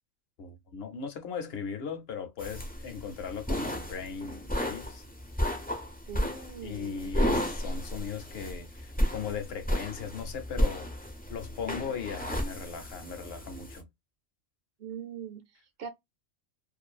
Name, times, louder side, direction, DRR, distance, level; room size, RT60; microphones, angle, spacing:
voice 1, 0.4-5.0 6.6-10.9 11.3-13.9, left 6 dB, 60° left, 0.8 m, -38 dB
sound 1, 2.4-13.8, equal, 15° left, 0.3 m, -33 dB
voice 2, 6.1-7.1 14.8-15.9, right 7 dB, 55° right, 0.8 m, -42 dB
2.5 x 2.3 x 2.3 m
omnidirectional pair, 1.3 m